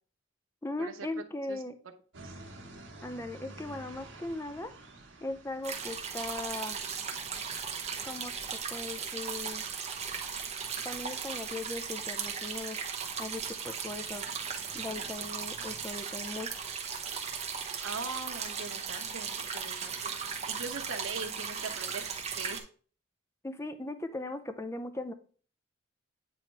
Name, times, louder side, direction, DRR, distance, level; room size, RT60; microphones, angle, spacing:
voice 1, 0.6-1.8 3.0-4.7 5.2-6.8 8.0-8.3 8.7-9.6 10.8-12.8 13.2-14.3 14.7-16.7 23.4-25.1, left 2 dB, 15° left, 8 dB, 0.5 m, -38 dB
sound 1, 2.1-13.6, right 2 dB, 65° right, 1.3 m, -53 dB
sound 2, 5.6-22.6, right 6 dB, 30° right, 0.9 m, -37 dB
voice 2, 17.8-22.7, right 4 dB, 85° right, 4 dB, 1.0 m, -41 dB
8.9 x 3.1 x 4.5 m, 0.42 s
head